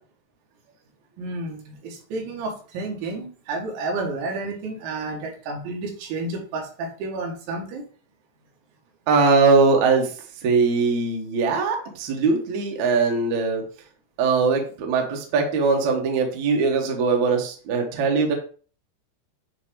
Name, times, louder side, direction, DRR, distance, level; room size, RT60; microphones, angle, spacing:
voice 1, 1.2-7.8, right 3 dB, 90° right, 0 dB, 3.9 m, -31 dB
voice 2, 9.1-10.1 10.4-13.6 14.2-18.3, right 4 dB, 70° right, 2 dB, 1.8 m, -21 dB
9.5 x 3.4 x 3.1 m, 0.40 s
omnidirectional pair, 5.2 m